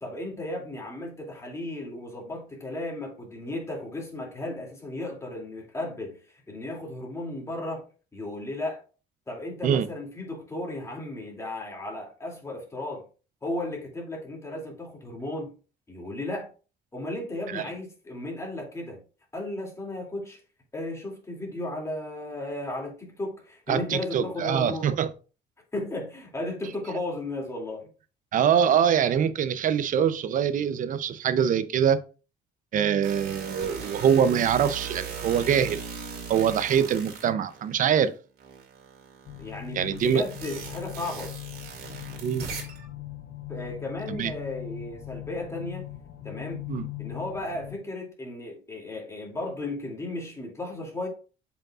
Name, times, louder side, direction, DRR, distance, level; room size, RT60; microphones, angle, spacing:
voice 1, 0.0-6.2 6.5-7.8 8.1-8.8 9.3-13.1 13.4-15.5 15.9-16.5 16.9-19.0 19.3-20.4 20.7-24.9 25.7-27.9 39.4-41.3 43.5-45.9 46.2-46.7 47.0-51.1, left 1 dB, 15° left, 2.5 m, -35 dB
voice 2, 23.7-25.1 28.3-32.0 32.7-35.8 36.3-38.1 39.7-40.2 42.2-42.4 44.1-44.3 46.7-46.9, right 8 dB, 50° right, 0.6 m, -24 dB
sound 1, 33.0-38.0 38.4-42.9, right 6 dB, 65° right, 2.2 m, -39 dB
sound 2, 39.3-47.8, left 16 dB, 60° left, 0.8 m, -40 dB
7.5 x 5.2 x 2.4 m
cardioid pair, 110°, 17 cm